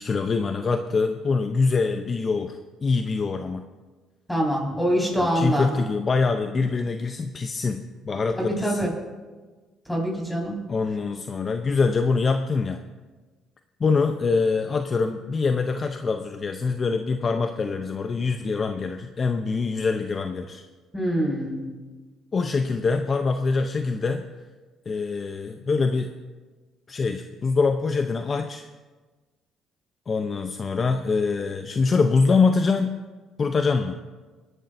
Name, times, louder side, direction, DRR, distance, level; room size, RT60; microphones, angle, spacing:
voice 1, 0.0-3.6 5.1-8.9 10.7-12.8 13.8-20.6 22.3-24.2 24.9-26.1 26.9-28.7 30.1-33.0 33.4-33.9, left 4 dB, 40° left, 6 dB, 0.6 m, -24 dB
voice 2, 4.3-5.7 8.4-8.9 9.9-10.6 20.9-21.6, equal, 5° left, -2 dB, 4.9 m, -24 dB
24.0 x 11.0 x 2.6 m, 1.3 s
cardioid pair, 85°, 0 cm